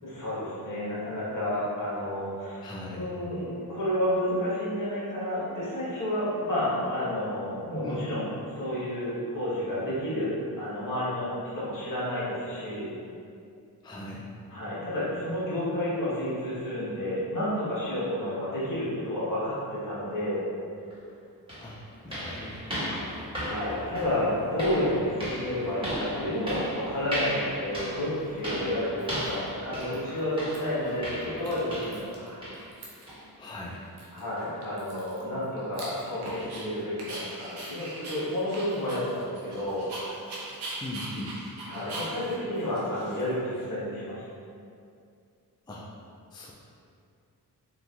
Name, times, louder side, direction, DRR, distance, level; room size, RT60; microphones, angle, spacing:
voice 1, 0.0-2.6 2.9-8.3 8.6-12.9 14.5-20.4 23.3-32.4 34.1-39.9 41.7-44.2, left 1 dB, 55° left, -9 dB, 1.4 m, -30 dB
voice 2, 2.6-3.2 7.8-8.0 13.8-14.4 21.6-21.8 22.0-23.1 33.4-33.8 40.8-41.3 45.7-45.8 46.3-46.5, left 1 dB, 10° left, -3 dB, 0.3 m, -39 dB
sound 1, 20.9-21.0 21.5-32.1 32.4-32.7 33.1-33.2 33.7-33.8 34.4-34.5, equal, 15° right, 1.4 m, -36 dB
Dog, 28.2-28.3 29.0-29.5 29.8-30.6 30.8-31.0 31.2-32.3 32.5-33.2 33.5-33.6 34.0-36.6 37.0-43.6, right 2 dB, 80° right, 0.7 m, -41 dB
3.7 x 2.6 x 2.4 m, 2.4 s
cardioid pair, 55°, 39 cm